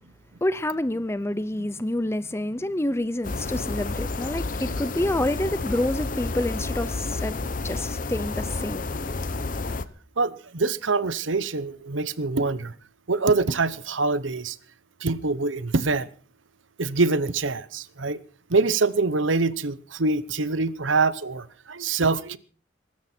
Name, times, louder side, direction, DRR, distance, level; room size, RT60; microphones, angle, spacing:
voice 1, 0.4-7.4 7.6-8.9, left 1 dB, 15° left, 0.6 m, -28 dB
sound 1, 3.2-9.8, left 3 dB, 45° left, 0.8 m, -30 dB
voice 2, 10.2-12.7 13.1-14.5 15.0-16.1 16.8-18.2 18.5-22.4, right 3 dB, 85° right, 1.0 m, -24 dB
22.0 x 13.0 x 4.5 m
head